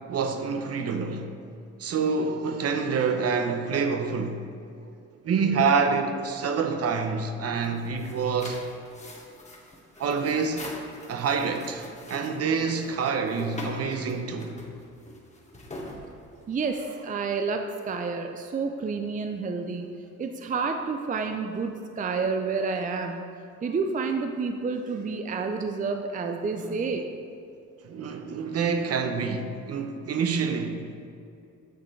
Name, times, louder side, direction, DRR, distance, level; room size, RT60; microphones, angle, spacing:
voice 1, 0.1-1.3 1.8-4.4 5.2-8.6 10.0-10.7 11.1-14.6 26.5-26.8 27.8-30.8, right 5 dB, 55° right, 0.8 m, -27 dB
sound 1, 7.5-16.7, left 1 dB, 25° left, 1.5 m, -43 dB
voice 2, 16.5-19.9 20.2-23.3 23.6-27.1, right 4 dB, 25° right, 0.5 m, -29 dB
9.2 x 6.6 x 3.2 m
cardioid pair, 90°, 30 cm